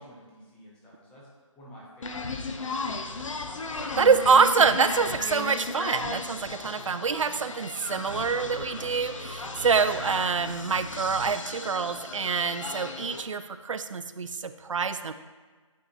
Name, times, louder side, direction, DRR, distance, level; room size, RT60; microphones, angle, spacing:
voice 1, 0.0-3.3, equal, 5° left, -5 dB, 0.6 m, -51 dB
sound 1, 2.0-13.2, left 3 dB, 70° left, 0.6 m, -36 dB
sound 2, 3.2-11.3, equal, 40° right, 1.1 m, -48 dB
voice 2, 3.9-15.1, right 5 dB, 70° right, 11 dB, 0.4 m, -25 dB
sound 3, 7.7-13.1, left 2 dB, 50° left, 1.0 m, -47 dB
8.6 x 4.0 x 2.8 m, 1.4 s
figure-of-eight pair, 155°, 17 cm